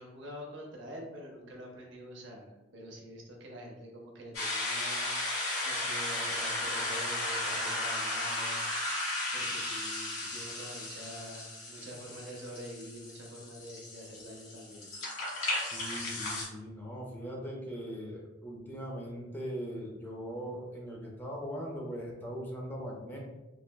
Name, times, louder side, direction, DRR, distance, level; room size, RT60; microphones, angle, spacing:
voice 1, 0.0-5.1 5.6-8.6 8.9-9.0 9.3-14.9, equal, 65° right, 0 dB, 0.6 m, -46 dB
sound 1, 4.3-16.4, left 1 dB, 90° left, 1.2 m, -35 dB
voice 2, 15.6-23.2, equal, 10° left, -2 dB, 0.4 m, -40 dB
3.2 x 2.0 x 2.2 m, 1.1 s
head